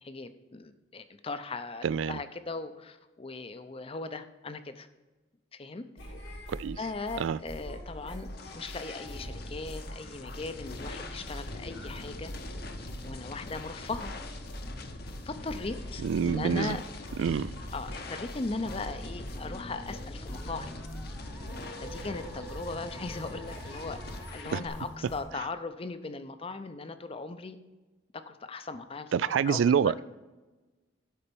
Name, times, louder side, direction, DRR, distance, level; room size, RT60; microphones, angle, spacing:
voice 1, 0.0-4.9 5.5-5.8 6.8-8.3 8.5-12.3 13.0-14.1 15.3-16.8 17.7-20.8 21.8-24.0 24.3-27.6 28.3-30.0, left 3 dB, 30° left, 11 dB, 0.6 m, -38 dB
voice 2, 1.8-2.2 6.5-6.8 7.2-7.4 16.0-16.8 17.2-17.5 24.5-24.6 29.1-29.9, right 7 dB, 80° right, 19 dB, 0.3 m, -26 dB
sound 1, 6.0-25.2, equal, 85° left, 2.6 m, -44 dB
sound 2, 7.7-24.7, left 2 dB, 55° left, 0.9 m, -43 dB
Musical instrument, 19.4-24.6, right 1 dB, 10° right, 0.6 m, -52 dB
11.5 x 4.3 x 6.8 m, 1.2 s
head